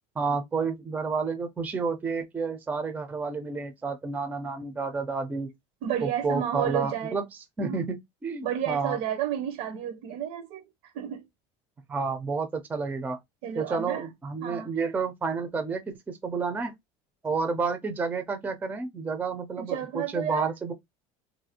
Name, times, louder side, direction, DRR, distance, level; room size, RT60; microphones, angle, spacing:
voice 1, 0.2-5.5 6.0-7.2 7.6-9.0 11.9-13.2 13.6-16.7 17.2-20.7, right 4 dB, 10° right, 0.4 m, -30 dB
voice 2, 5.8-7.2 7.6-7.8 8.4-10.7 10.9-11.2 13.4-14.1 14.4-14.7 19.6-20.5, right 10 dB, 75° right, 0.6 m, -31 dB
2.7 x 2.4 x 2.7 m
cardioid pair, 150°, 13 cm